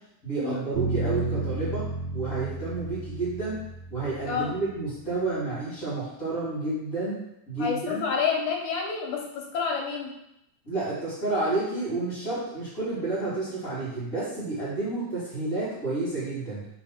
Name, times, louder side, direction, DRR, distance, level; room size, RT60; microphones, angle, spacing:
voice 1, 0.2-1.8 2.1-3.6 3.9-7.2 7.5-8.0 10.6-16.6, right 2 dB, 30° left, -10 dB, 2.5 m, -30 dB
sound 1, 0.7-4.8, right 3 dB, 60° right, 0.9 m, -32 dB
voice 2, 7.6-10.1, left 6 dB, 80° left, 0 dB, 2.4 m, -29 dB
4.6 x 4.2 x 5.7 m, 0.83 s
omnidirectional pair, 3.5 m